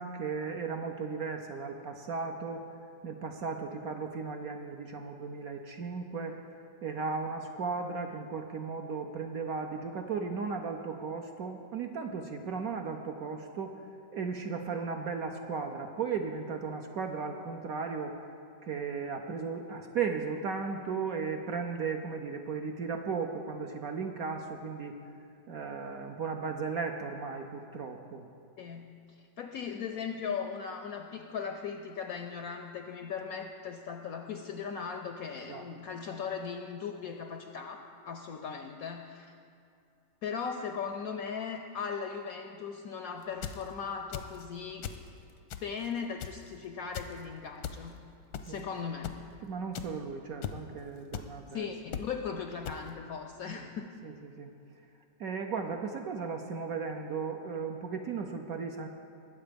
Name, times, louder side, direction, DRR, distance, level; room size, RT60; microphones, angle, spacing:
voice 1, 0.0-2.6 3.0-6.4 6.8-13.8 14.1-18.2 18.6-25.0 25.5-28.3 35.4-35.7 48.5-48.6 49.4-51.7 53.5-53.6 54.0-54.5 55.2-58.9, right 5 dB, 65° right, 4 dB, 0.9 m, -36 dB
voice 2, 28.6-39.3 40.2-44.9 45.6-48.0 48.4-49.2 51.5-53.9, left 6 dB, 70° left, 6 dB, 0.8 m, -38 dB
sound 1, 43.2-43.6 44.1-44.4 44.8-45.1 45.5-45.9 46.2-46.5 46.9-47.1 47.6-47.8 48.3-48.6 49.0-49.1 49.7-49.8 50.4-50.6 51.1-51.2 51.9-52.0 52.6-52.8, left 9 dB, 85° left, 1.5 m, -37 dB
21.0 x 7.7 x 5.2 m, 2.5 s
omnidirectional pair, 2.1 m